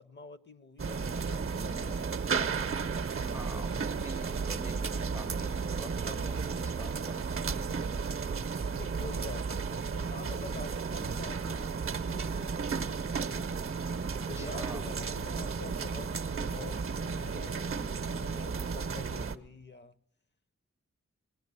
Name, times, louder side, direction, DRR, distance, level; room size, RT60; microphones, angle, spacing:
voice 1, 0.0-2.3 5.9-6.3 8.7-13.0 14.2-19.9, left 4 dB, 40° left, 0.6 m, -47 dB
sound 1, 0.8-19.4, right 5 dB, 50° right, 0.6 m, -33 dB
voice 2, 3.2-8.1 14.1-14.9, equal, 10° right, 0.5 m, -47 dB
19.0 x 10.5 x 6.7 m
wide cardioid pair, 90°, 29 cm